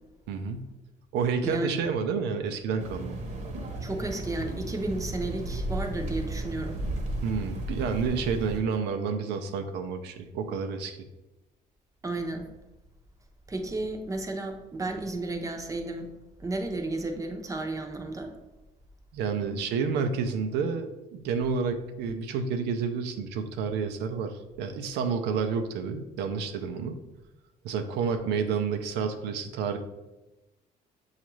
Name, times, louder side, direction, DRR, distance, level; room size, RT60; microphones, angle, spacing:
voice 1, 0.3-0.7 1.1-3.2 7.2-11.0 19.1-27.0 27.6-29.8, right 5 dB, 85° right, 6 dB, 0.5 m, -30 dB
voice 2, 1.4-1.8 3.8-6.8 12.0-12.5 13.5-16.1 16.4-18.3, right 2 dB, 20° right, 4 dB, 0.6 m, -33 dB
sound 1, 2.8-8.6, right 1 dB, 45° right, 0.8 m, -34 dB
7.0 x 2.4 x 3.1 m, 1.0 s
cardioid pair, 110°, 17 cm